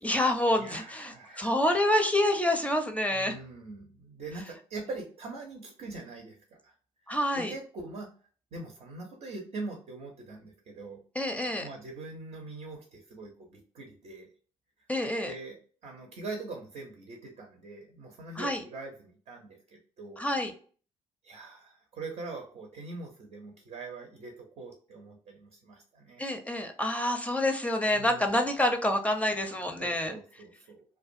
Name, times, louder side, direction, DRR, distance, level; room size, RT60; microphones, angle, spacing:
voice 1, 0.0-3.3 7.1-7.5 11.2-11.7 14.9-15.3 18.4-18.6 20.2-20.5 26.2-30.2, left 1 dB, 10° left, 5 dB, 0.5 m, -27 dB
voice 2, 0.6-1.6 3.1-6.7 7.3-8.1 8.5-11.0 11.4-14.3 15.2-15.6 15.8-20.2 21.2-26.3 27.9-28.4 29.8-30.8, right 3 dB, 60° right, 2 dB, 0.7 m, -43 dB
2.4 x 2.2 x 2.5 m, 0.43 s
hypercardioid pair, 50°, 13 cm